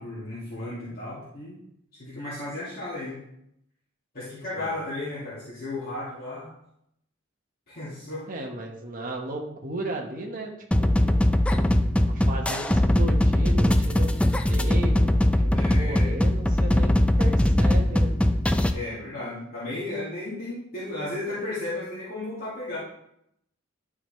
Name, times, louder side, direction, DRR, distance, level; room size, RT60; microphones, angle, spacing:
voice 1, 0.0-1.6 2.0-3.2 4.1-6.5 7.7-8.3 11.1-11.2 15.5-16.1 18.7-22.8, left 2 dB, 50° left, -10 dB, 2.2 m, -34 dB
voice 2, 8.3-10.5 10.8-11.3 12.1-14.1 14.5-18.2, right 2 dB, 45° right, 0 dB, 1.2 m, -35 dB
sound 1, 10.7-18.7, left 1 dB, 5° left, 0.4 m, -21 dB
11.0 x 4.8 x 3.2 m, 0.77 s
head